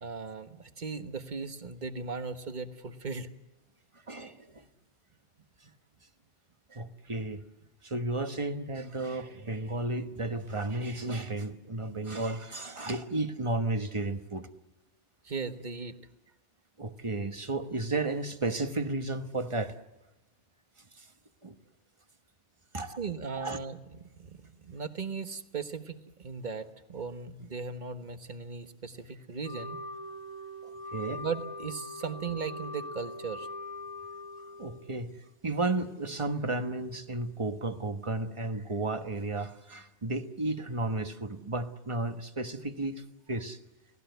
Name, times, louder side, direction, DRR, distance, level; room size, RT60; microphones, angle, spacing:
voice 1, 0.0-3.3 15.2-15.9 23.0-23.8 24.2-29.8 31.2-33.5, right 5 dB, 45° right, 8 dB, 1.4 m, -37 dB
voice 2, 4.1-4.7 6.7-7.4 7.8-14.5 16.8-19.7 21.0-21.1 21.4-21.5 22.7-23.0 23.4-23.6 30.6-31.2 34.6-43.6, right 2 dB, 30° right, 8 dB, 1.2 m, -33 dB
Wind instrument woodwind instrument, 29.4-35.1, left 2 dB, 20° left, 1.2 m, -42 dB
29.5 x 18.5 x 8.1 m, 1.1 s
omnidirectional pair, 1.1 m